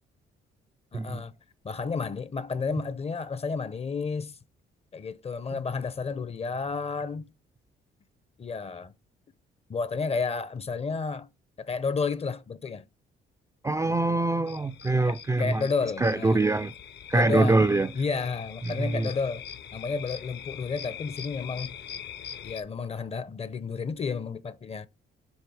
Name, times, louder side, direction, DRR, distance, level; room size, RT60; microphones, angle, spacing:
voice 1, 0.9-1.3 1.6-4.4 4.9-7.3 8.4-8.9 9.7-11.3 11.6-12.8 15.0-16.5 17.1-17.7 17.9-19.4 19.7-21.7 22.4-24.9, left 4 dB, 30° left, 0.6 m, -31 dB
voice 2, 13.6-15.6 16.0-16.7 17.1-17.9 18.7-19.1, right 2 dB, 15° right, 0.3 m, -24 dB
sound 1, 14.5-22.6, left 8 dB, 60° left, 0.8 m, -43 dB
7.2 x 3.2 x 4.6 m
cardioid pair, 90°, 20 cm